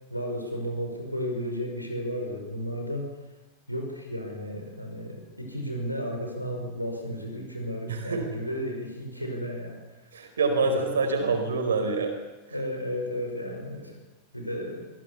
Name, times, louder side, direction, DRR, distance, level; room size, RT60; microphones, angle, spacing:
voice 1, 0.1-3.1 3.7-9.8 12.5-14.0 14.3-14.8, equal, 90° left, 2 dB, 5.3 m, -33 dB
voice 2, 7.9-8.2 10.1-12.1, right 3 dB, 70° right, 5 dB, 4.5 m, -26 dB
24.0 x 17.5 x 7.1 m, 1.1 s
figure-of-eight pair, 90°, 0 cm